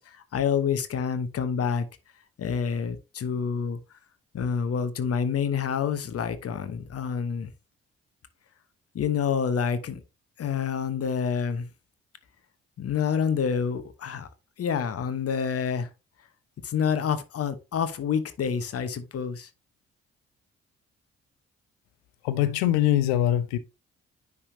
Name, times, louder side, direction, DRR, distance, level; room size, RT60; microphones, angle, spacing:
voice 1, 0.0-1.9 2.4-3.8 4.3-7.5 8.9-10.0 10.4-11.7 12.8-14.3 14.6-15.9 16.6-19.5, left 7 dB, 45° left, 1.0 m, -28 dB
voice 2, 22.2-23.6, left 12 dB, 70° left, 0.7 m, -23 dB
9.8 x 3.6 x 2.7 m
figure-of-eight pair, 40°, 34 cm